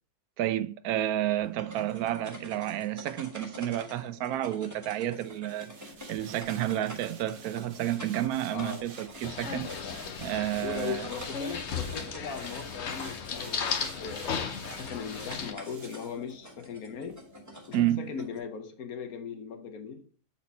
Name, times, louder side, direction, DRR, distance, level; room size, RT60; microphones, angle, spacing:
voice 1, 0.4-5.8 6.1-9.7 10.2-11.1 17.7-18.1, right 13 dB, 85° right, 1.1 m, -30 dB
sound 1, 1.4-18.4, equal, 10° right, 1.3 m, -47 dB
sound 2, 5.1-16.7 17.1-17.2, right 5 dB, 45° right, 0.9 m, -51 dB
voice 2, 8.5-8.9 9.6-10.1 10.6-17.2 17.7-20.0, left 6 dB, 75° left, 1.5 m, -39 dB
sound 3, 9.2-15.5, left 6 dB, 55° left, 1.0 m, -36 dB
7.4 x 4.2 x 4.2 m
omnidirectional pair, 1.5 m